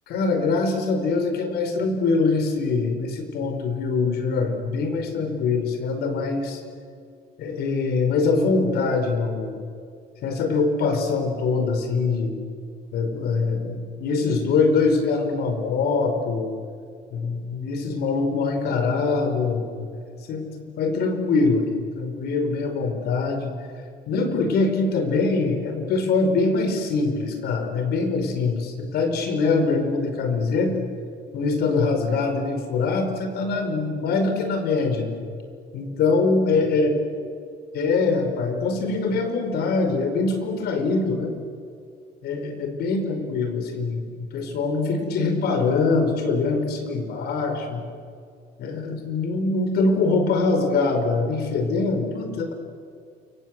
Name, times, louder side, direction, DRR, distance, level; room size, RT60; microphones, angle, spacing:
voice 1, 0.1-6.6 7.4-9.6 10.2-12.3 12.9-16.5 17.1-19.9 20.3-20.4 20.8-21.6 22.0-23.5 24.1-30.9 31.3-35.1 35.7-36.9 37.7-41.3 42.2-47.8 48.6-52.5, left 4 dB, 75° left, 6 dB, 5.5 m, -23 dB
29.0 x 24.5 x 8.1 m, 2.3 s
cardioid pair, 110°, 17 cm